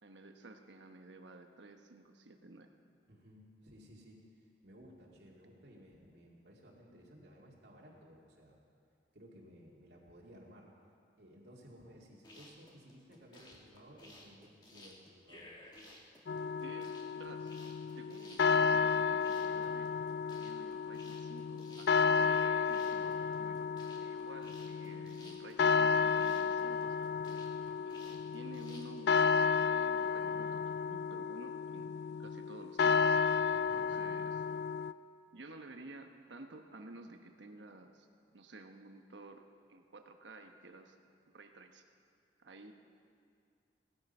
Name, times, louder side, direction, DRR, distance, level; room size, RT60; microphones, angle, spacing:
voice 1, 0.0-2.7 16.6-17.5 18.0-19.9 20.4-23.7 24.0-27.0 27.8-29.4 29.7-33.2 33.5-34.4 35.3-38.1 38.3-41.0 41.3-41.8 42.4-42.7, right 2 dB, 85° right, 5 dB, 1.1 m, -53 dB
voice 2, 3.1-8.6 9.1-10.7 11.2-15.7 23.0-23.2 33.5-33.9, equal, 70° right, -3 dB, 2.2 m, -57 dB
sound 1, 12.1-29.3, left 1 dB, 25° left, 1.6 m, -56 dB
sound 2, 16.3-34.9, left 6 dB, 65° left, 0.3 m, -32 dB
17.5 x 13.0 x 5.5 m, 2.3 s
head